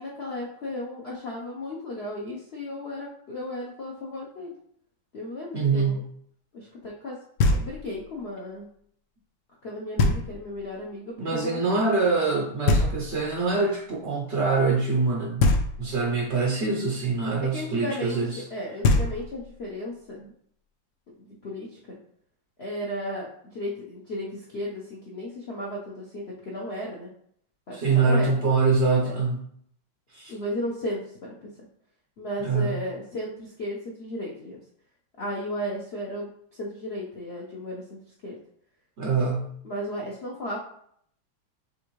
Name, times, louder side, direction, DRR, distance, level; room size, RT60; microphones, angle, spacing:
voice 1, 0.0-4.5 5.1-6.0 6.5-7.2 7.5-8.7 9.6-11.6 17.4-20.3 21.2-22.0 22.6-27.1 27.7-28.4 29.0-29.1 30.3-31.5 32.2-34.6 35.2-38.4 39.6-40.6, left 1 dB, 85° left, -3 dB, 0.5 m, -35 dB
voice 2, 5.5-6.1 11.2-15.5 15.8-18.4 27.7-29.4 30.1-30.3 32.4-32.8 39.0-39.5, right 4 dB, 85° right, -1 dB, 0.6 m, -24 dB
Knock, 7.4-8.1 10.0-10.6 12.7-13.5 15.4-16.2 18.5-18.6 18.8-19.6, left 2 dB, 70° left, 1.1 m, -24 dB
6.8 x 2.5 x 3.1 m, 0.65 s
omnidirectional pair, 2.3 m